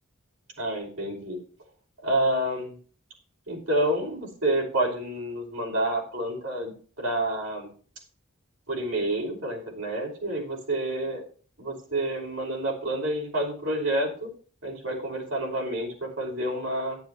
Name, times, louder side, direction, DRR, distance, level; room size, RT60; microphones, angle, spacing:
voice 1, 0.6-1.4 2.0-2.7 3.5-7.7 8.7-11.2 11.6-14.3 14.6-17.0, right 1 dB, 80° right, 0 dB, 5.5 m, -29 dB
11.5 x 11.0 x 3.1 m, 0.42 s
head